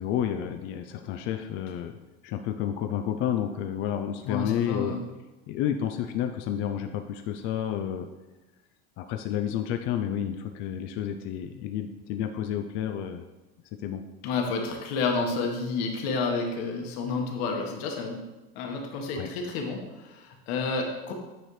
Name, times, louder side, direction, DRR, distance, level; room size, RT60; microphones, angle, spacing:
voice 1, 0.0-1.9 2.2-4.9 5.5-8.1 9.0-13.2 13.8-14.0 19.2-19.3, left 10 dB, 40° left, 5 dB, 0.4 m, -30 dB
voice 2, 4.2-5.0 14.2-18.2 18.5-21.1, left 4 dB, 70° left, 2 dB, 1.4 m, -30 dB
9.2 x 4.3 x 3.2 m, 1.1 s
supercardioid pair, 140°, 32 cm